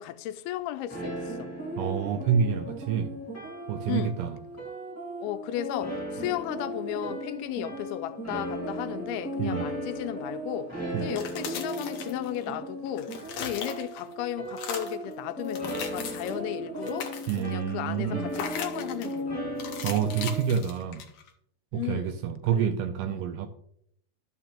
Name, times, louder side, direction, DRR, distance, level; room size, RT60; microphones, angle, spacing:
voice 1, 0.0-1.5 3.9-4.2 5.2-13.1 13.4-17.1 17.4-19.6 21.7-22.2 22.5-22.7 23.1-23.2, left 13 dB, 90° left, 2.5 m, -35 dB
sound 1, 0.9-20.5, equal, 15° left, 0.6 m, -36 dB
voice 2, 1.8-3.1 3.7-4.4 9.4-9.7 10.9-11.1 17.3-18.3 19.8-21.0 21.7-23.5, right 8 dB, 85° right, 1.9 m, -28 dB
sound 2, 11.0-12.6 12.9-14.1 14.5-15.0 15.4-16.4 16.7-17.6 18.3-19.1 19.6-21.3, left 7 dB, 70° left, 1.8 m, -38 dB
13.5 x 5.9 x 2.9 m
omnidirectional pair, 4.3 m